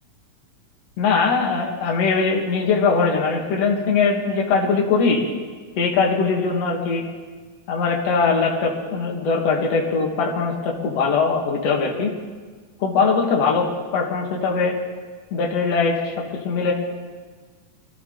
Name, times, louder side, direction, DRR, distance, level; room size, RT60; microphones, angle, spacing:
voice 1, 1.0-5.3 5.8-7.0 7.7-12.1 12.8-13.7 13.9-14.7 15.3-16.1 16.4-16.7, left 4 dB, 55° left, -1 dB, 2.8 m, -21 dB
23.5 x 13.5 x 3.9 m, 1.4 s
omnidirectional pair, 3.6 m